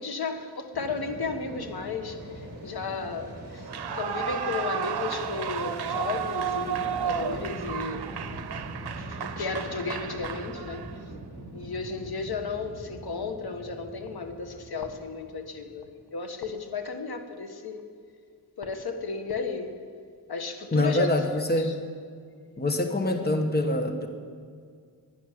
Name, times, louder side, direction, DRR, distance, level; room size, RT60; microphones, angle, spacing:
voice 1, 0.0-3.7 3.9-8.2 9.0-10.9 11.5-17.8 18.6-19.8 20.3-21.1 21.6-21.7, left 4 dB, 75° left, 6 dB, 1.4 m, -34 dB
Fixed-wing aircraft airplane, 0.7-15.9, right 1 dB, 40° right, 2.5 m, -42 dB
Clapping / Cheering / Applause, 3.6-11.0, right 8 dB, 85° right, 0.7 m, -33 dB
voice 2, 20.7-21.8 22.6-24.1, left 1 dB, 25° left, 5 dB, 1.3 m, -25 dB
11.5 x 11.0 x 9.9 m, 2.1 s
wide cardioid pair, 110°, 38 cm